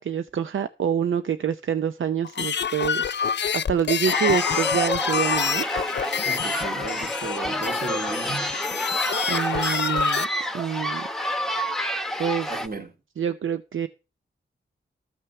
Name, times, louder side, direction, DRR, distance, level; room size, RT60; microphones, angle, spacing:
voice 1, 0.0-3.2 3.5-5.6 9.3-10.3 10.5-11.1 12.2-12.5 13.2-13.9, right 8 dB, 75° right, 0.6 m, -26 dB
sound 1, 2.2-10.3, left 7 dB, 60° left, 0.5 m, -27 dB
sound 2, 4.1-12.7, left 1 dB, ahead, 1.0 m, -28 dB
voice 2, 6.2-8.5 12.5-12.9, right 3 dB, 45° right, 2.4 m, -34 dB
13.5 x 6.2 x 5.8 m
wide cardioid pair, 80°, 21 cm